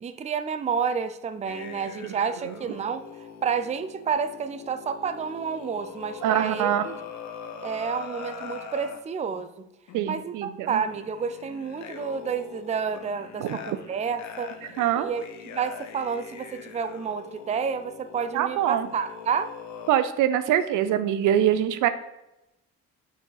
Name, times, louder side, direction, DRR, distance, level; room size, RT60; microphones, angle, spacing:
voice 1, 0.0-7.0 7.6-9.7 10.1-14.5 14.9-19.5, right 6 dB, 25° right, 10 dB, 0.4 m, -30 dB
sound 1, 1.5-9.0 9.9-10.1 10.8-19.9, left 6 dB, 70° left, 0.8 m, -42 dB
voice 2, 6.2-6.9 9.9-10.8 13.4-13.6 14.8-15.1 18.3-18.9 19.9-21.9, right 11 dB, 85° right, 11 dB, 0.5 m, -24 dB
6.0 x 4.2 x 3.9 m, 0.91 s
cardioid pair, 90°, 30 cm